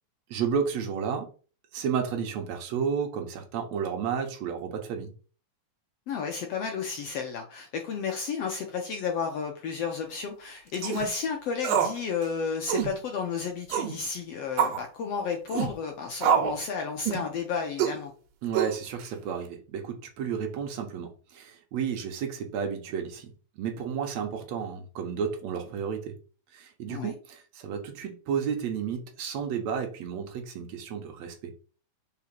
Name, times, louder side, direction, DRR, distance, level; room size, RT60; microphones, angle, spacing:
voice 1, 0.3-1.3 1.7-5.1 18.4-23.3 23.6-26.1 26.5-31.5, right 7 dB, 60° right, 3 dB, 2.1 m, -32 dB
voice 2, 6.1-18.1 26.9-27.1, left 6 dB, 75° left, 2 dB, 1.4 m, -32 dB
sound 1, 10.7-11.1 11.6-12.0 12.2-12.3 12.7-12.9 13.7-14.0 14.6-14.8 15.5-15.7 16.2-16.6 17.1-17.3 17.8-18.0 18.5-19.0, right 8 dB, 80° right, 2.6 m, -26 dB
5.0 x 4.4 x 5.9 m, 0.38 s
omnidirectional pair, 4.0 m